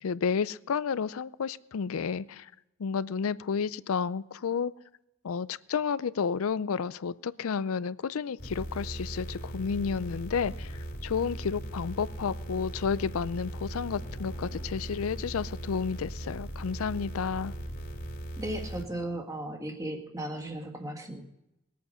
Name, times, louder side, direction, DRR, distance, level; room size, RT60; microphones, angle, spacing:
voice 1, 0.0-2.5 2.8-4.7 5.2-10.7 11.0-17.5, left 6 dB, 75° left, 18 dB, 0.4 m, -31 dB
sound 1, 8.4-18.8, right 1 dB, 45° left, 3.1 m, -39 dB
sound 2, 10.6-15.2, left 1 dB, 20° left, 1.7 m, -54 dB
voice 2, 18.4-21.2, right 1 dB, 15° right, 1 dB, 1.7 m, -36 dB
20.5 x 8.5 x 5.5 m, 0.92 s
head